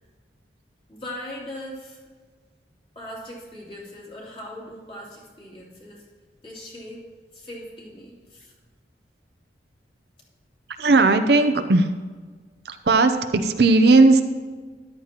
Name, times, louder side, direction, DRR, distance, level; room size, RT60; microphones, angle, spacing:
voice 1, 0.9-2.0 2.9-6.1 6.4-7.1 7.3-8.5, left 1 dB, 30° left, -5 dB, 2.8 m, -39 dB
voice 2, 10.8-11.9 12.6-14.2, right 3 dB, 60° right, 7 dB, 0.6 m, -17 dB
13.5 x 11.5 x 2.9 m, 1.4 s
head